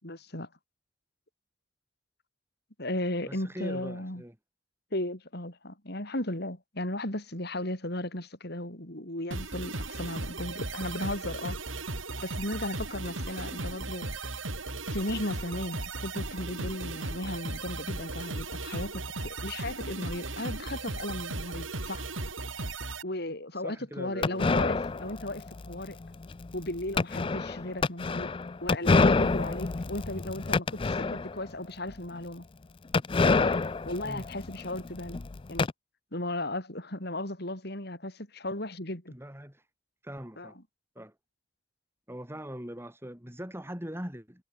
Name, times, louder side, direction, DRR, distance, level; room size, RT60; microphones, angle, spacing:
voice 1, 0.0-0.5 2.8-4.2 4.9-11.6 12.2-14.3 14.9-22.1 23.0-26.0 26.5-28.3 28.6-32.5 33.2-33.6 33.8-35.2 35.5-35.7 36.1-39.2 40.4-40.5, left 1 dB, 55° left, 6.2 m, -36 dB
voice 2, 3.2-4.3 23.6-24.5 34.0-34.3 39.1-39.6 40.0-40.6 40.9-41.1 42.1-44.4, equal, 10° right, 4.9 m, -41 dB
sound 1, 9.3-23.0, right 2 dB, 90° right, 5.2 m, -36 dB
sound 2, 24.2-31.5 31.9-32.0 32.2-32.3 32.9-35.7, left 3 dB, 25° left, 0.4 m, -27 dB
head